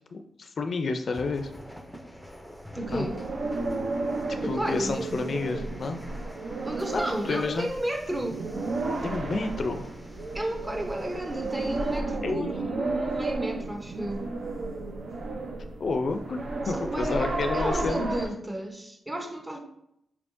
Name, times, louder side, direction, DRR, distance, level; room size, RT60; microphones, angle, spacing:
voice 1, 0.1-1.5 2.9-3.1 4.5-6.0 6.9-7.7 9.0-9.9 12.2-12.5 15.8-18.1, left 3 dB, 60° left, 7 dB, 0.4 m, -30 dB
sound 1, 1.1-12.0, equal, ahead, 0.6 m, -47 dB
voice 2, 2.7-3.2 4.4-5.0 6.6-8.4 10.3-14.3 16.6-19.6, right 1 dB, 25° right, 3 dB, 0.9 m, -33 dB
sound 2, 2.8-18.3, right 2 dB, 65° right, 0.6 m, -33 dB
4.7 x 3.5 x 2.6 m, 0.75 s
cardioid pair, 70°, 0 cm